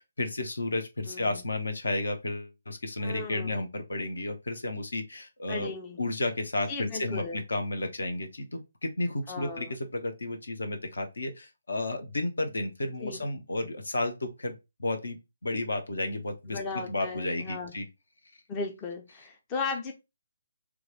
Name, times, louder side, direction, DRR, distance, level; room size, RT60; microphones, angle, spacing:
voice 1, 0.0-5.7 6.0-15.2 15.4-16.6 16.9-17.9, left 2 dB, 60° left, 0.8 m, -32 dB
voice 2, 1.0-1.4 3.0-3.5 5.5-6.0 6.7-7.4 9.3-9.7 13.0-13.2 16.5-17.7 18.5-19.9, left 4 dB, 20° left, 0.5 m, -36 dB
3.1 x 2.3 x 3.8 m
figure-of-eight pair, 140°, 0 cm